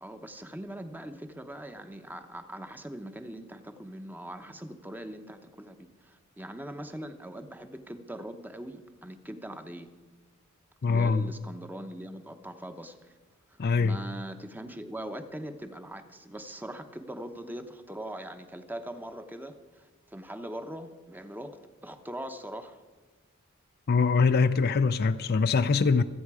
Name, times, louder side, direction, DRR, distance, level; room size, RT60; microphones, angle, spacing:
voice 1, 0.0-9.9 10.9-13.1 13.5-22.8, right 1 dB, 10° right, 0.8 m, -41 dB
voice 2, 10.8-11.3 13.6-14.0 23.9-26.0, left 4 dB, 45° left, 0.4 m, -23 dB
26.5 x 9.3 x 4.8 m
head